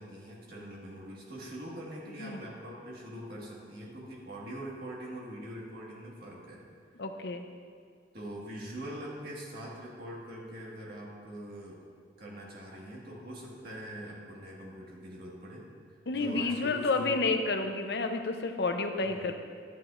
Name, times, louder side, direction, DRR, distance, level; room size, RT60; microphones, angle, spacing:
voice 1, 0.0-6.6 8.1-11.8 12.2-17.2 19.0-19.3, equal, 55° right, -4 dB, 1.7 m, -43 dB
voice 2, 7.0-7.5 16.1-19.3, left 3 dB, 65° left, 5 dB, 0.6 m, -30 dB
10.5 x 9.2 x 2.5 m, 2.2 s
head